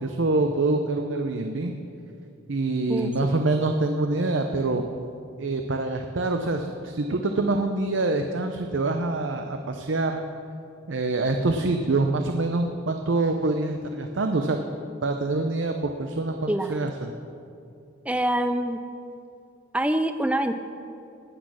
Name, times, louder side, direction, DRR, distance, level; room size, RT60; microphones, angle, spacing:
voice 1, 0.0-1.7 2.5-4.8 5.4-10.2 10.9-14.6 15.0-17.1, right 2 dB, 70° right, 5 dB, 0.6 m, -25 dB
voice 2, 16.5-16.8 18.1-18.8 19.7-20.6, right 1 dB, 5° right, 9 dB, 0.4 m, -25 dB
18.5 x 6.3 x 6.3 m, 2.6 s
head